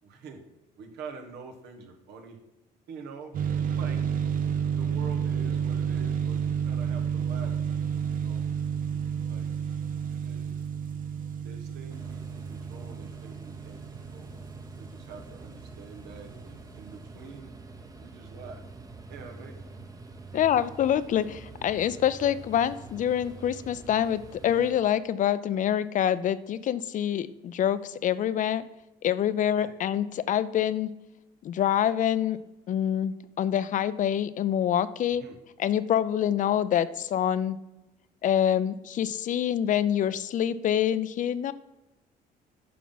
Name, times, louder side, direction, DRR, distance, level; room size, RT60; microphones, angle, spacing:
voice 1, 0.0-0.4 0.8-2.4 2.9-3.3 3.8-4.0 4.7-8.4 9.3-9.5 10.2-10.6 11.4-14.5 14.8-17.5 18.0-18.6 19.1-19.6 20.3-20.4 29.6-29.7 35.2-35.4, right 5 dB, 80° right, 4 dB, 1.6 m, -46 dB
sound 1, 3.3-15.8, right 7 dB, 55° right, 0.8 m, -31 dB
sound 2, 11.9-24.7, right 3 dB, 20° right, 0.9 m, -46 dB
voice 2, 20.3-28.6 29.0-30.9 31.4-32.4 32.7-35.2 35.6-37.6 38.2-41.5, left 10 dB, 50° left, 15 dB, 0.5 m, -26 dB
9.3 x 5.8 x 4.0 m, 1.0 s
cardioid pair, 110°, 17 cm